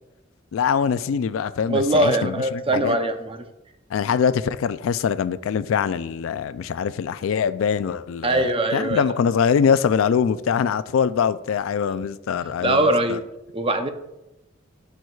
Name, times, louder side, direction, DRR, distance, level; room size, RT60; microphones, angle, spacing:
voice 1, 0.5-3.0 3.9-8.5 8.7-13.2, left 7 dB, 85° left, 15 dB, 0.3 m, -23 dB
voice 2, 1.7-3.4 8.2-9.1 12.3-13.2 13.5-13.9, right 2 dB, 25° right, 7 dB, 0.6 m, -22 dB
12.0 x 4.6 x 2.3 m, 0.92 s
head